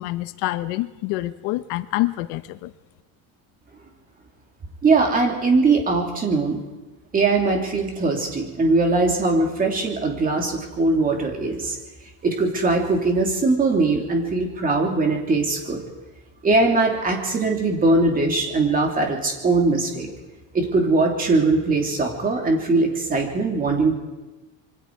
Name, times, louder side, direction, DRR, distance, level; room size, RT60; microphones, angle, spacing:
voice 1, 0.0-2.7, left 17 dB, 75° left, 12 dB, 1.0 m, -26 dB
voice 2, 4.8-6.6 7.1-11.8 12.2-15.8 16.4-20.1 20.5-23.9, right 3 dB, 20° right, 1 dB, 2.9 m, -21 dB
26.5 x 23.5 x 4.7 m, 1.1 s
cardioid pair, 175°, 41 cm